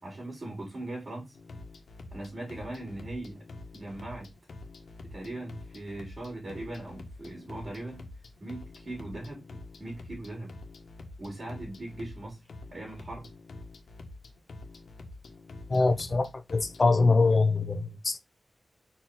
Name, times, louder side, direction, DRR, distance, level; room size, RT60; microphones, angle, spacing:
voice 1, 0.0-1.4 2.1-3.4 3.7-4.3 5.0-8.0 8.4-9.4 9.8-10.5 11.2-12.4 12.7-13.3, right 2 dB, 40° right, 3.9 m, -39 dB
sound 1, 1.3-16.8, left 2 dB, 85° left, 1.4 m, -47 dB
voice 2, 15.7-18.2, left 3 dB, 40° left, 0.9 m, -24 dB
5.6 x 4.8 x 3.9 m
wide cardioid pair, 105°, 0 cm